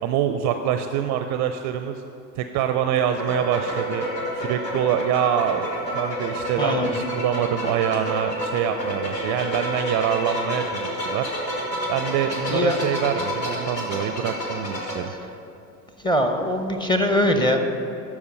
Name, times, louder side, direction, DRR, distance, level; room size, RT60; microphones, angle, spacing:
voice 1, 0.0-2.0 2.4-4.0 4.3-11.3 11.9-15.1, right 9 dB, 40° right, 8 dB, 0.4 m, -25 dB
sound 1, 3.0-15.0, equal, 85° left, 1.5 m, -29 dB
voice 2, 6.6-7.0 12.5-12.8 16.0-17.6, left 1 dB, 10° left, 5 dB, 0.7 m, -21 dB
12.0 x 4.8 x 5.4 m, 2.7 s
figure-of-eight pair, 75°, 49 cm